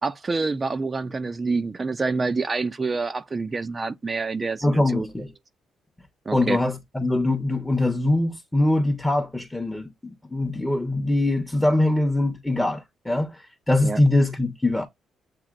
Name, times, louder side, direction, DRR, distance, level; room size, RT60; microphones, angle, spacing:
voice 1, 0.0-5.1 6.3-6.6 13.8-14.0, right 4 dB, 30° right, 0.5 m, -27 dB
voice 2, 4.6-5.3 6.3-9.9 10.3-14.9, left 2 dB, 10° left, 0.9 m, -22 dB
7.6 x 2.7 x 2.4 m
cardioid pair, 90°, 0 cm